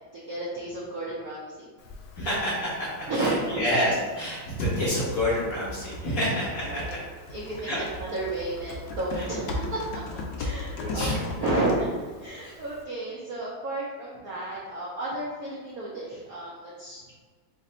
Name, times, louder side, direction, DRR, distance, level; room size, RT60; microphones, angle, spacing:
voice 1, 0.1-1.7 3.1-3.6 6.2-6.3 6.6-7.0 7.3-17.1, right 2 dB, 70° right, -6 dB, 0.8 m, -32 dB
Typing, 1.8-12.8, left 2 dB, 85° left, 0.8 m, -38 dB
voice 2, 2.2-2.9 3.1-6.8 7.7-7.8 9.2-9.3 10.8-11.2 12.4-12.5, equal, 55° left, -7 dB, 1.1 m, -28 dB
4.1 x 2.5 x 4.1 m, 1.5 s
omnidirectional pair, 2.4 m